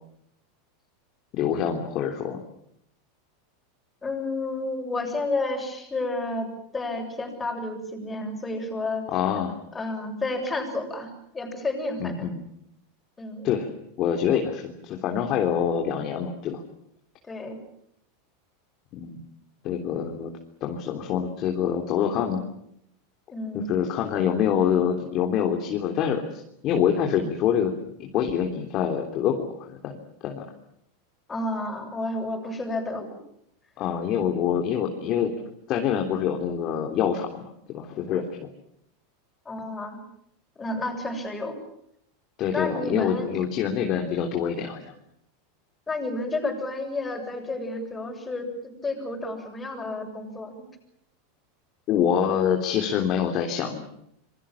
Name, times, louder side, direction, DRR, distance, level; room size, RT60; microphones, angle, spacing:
voice 1, 1.3-2.4 9.1-9.6 12.0-12.4 13.4-13.7 14.0-16.6 18.9-19.2 19.6-20.3 20.6-22.4 23.5-27.7 28.0-30.4 33.8-35.3 35.7-38.5 42.4-44.9 51.9-53.9, left 8 dB, 40° left, 3 dB, 3.4 m, -26 dB
voice 2, 4.0-9.1 9.7-11.1 11.3-12.3 13.2-13.5 17.3-17.6 23.3-23.7 31.3-33.1 39.5-40.0 40.6-41.5 42.5-43.3 45.9-48.5 48.8-50.6, left 2 dB, 15° left, 3 dB, 7.4 m, -31 dB
27.0 x 23.5 x 7.2 m, 0.74 s
supercardioid pair, 140°, 0 cm